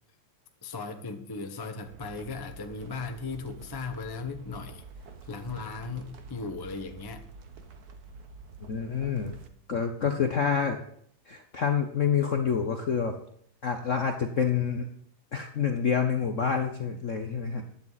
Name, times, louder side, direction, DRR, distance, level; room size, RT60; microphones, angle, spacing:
voice 1, 0.6-4.8 5.2-7.3 10.0-10.2, left 4 dB, 20° left, 6 dB, 0.7 m, -37 dB
sound 1, 1.9-9.5, right 4 dB, 50° right, 1.4 m, -47 dB
voice 2, 8.7-9.4 9.7-10.8 11.3-13.2 13.6-14.9 15.3-17.6, left 7 dB, 50° left, 5 dB, 0.9 m, -27 dB
15.0 x 10.5 x 4.1 m, 0.66 s
omnidirectional pair, 2.4 m